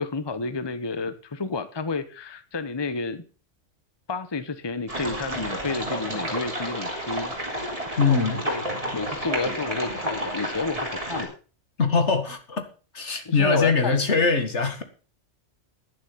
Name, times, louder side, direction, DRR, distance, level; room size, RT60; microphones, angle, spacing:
voice 1, 0.0-3.2 4.1-7.3 7.6-8.6 8.9-11.3 13.3-14.0, left 3 dB, 20° left, 0.9 m, -30 dB
sound 1, 4.9-11.3, equal, 30° right, 3.9 m, -31 dB
voice 2, 8.0-8.4 11.8-12.6 12.9-14.8, left 4 dB, 65° left, 2.2 m, -22 dB
11.0 x 10.5 x 5.7 m
omnidirectional pair, 1.3 m